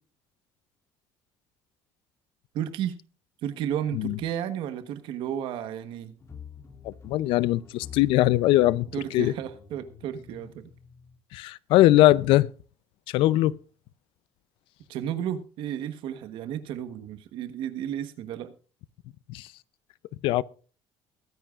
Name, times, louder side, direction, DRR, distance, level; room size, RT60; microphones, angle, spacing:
voice 1, 2.5-3.0 3.4-6.1 8.9-10.7 14.9-18.5, right 10 dB, 70° right, 1.2 m, -33 dB
sound 1, 6.2-11.2, left 6 dB, 30° left, 2.5 m, -48 dB
voice 2, 6.8-8.9 9.1-9.3 11.3-12.5 13.1-13.6 19.3-19.5 20.2-20.4, left 16 dB, 75° left, 0.6 m, -21 dB
22.5 x 10.0 x 2.5 m
cardioid pair, 130°, 9 cm